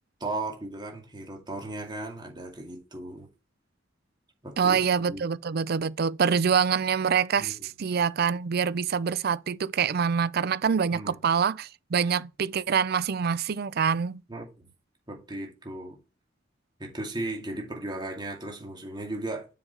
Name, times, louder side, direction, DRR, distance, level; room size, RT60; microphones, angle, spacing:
voice 1, 0.2-3.3 4.4-4.8 5.1-5.2 7.4-7.5 10.9-11.2 14.3-14.7 15.1-16.0 16.8-19.5, right 2 dB, 25° right, 2.3 m, -36 dB
voice 2, 4.6-14.2, right 6 dB, 55° right, 0.4 m, -25 dB
7.3 x 5.1 x 4.1 m
head